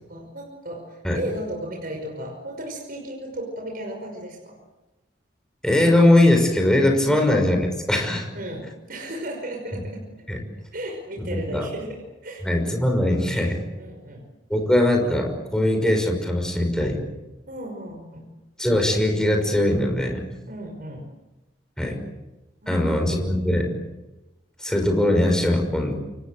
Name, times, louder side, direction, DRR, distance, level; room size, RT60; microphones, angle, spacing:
voice 1, 0.1-4.6 8.3-10.0 10.7-12.5 13.8-14.2 17.5-18.3 20.5-21.1 22.6-23.3, right 1 dB, 50° right, 1 dB, 5.7 m, -35 dB
voice 2, 5.6-7.6 7.9-8.3 10.3-10.4 11.3-11.6 12.4-13.6 14.5-17.0 18.6-20.3 21.8-22.0 22.7-23.7 24.6-25.9, left 1 dB, 5° left, 3 dB, 6.0 m, -20 dB
29.0 x 24.5 x 7.9 m, 1.1 s
head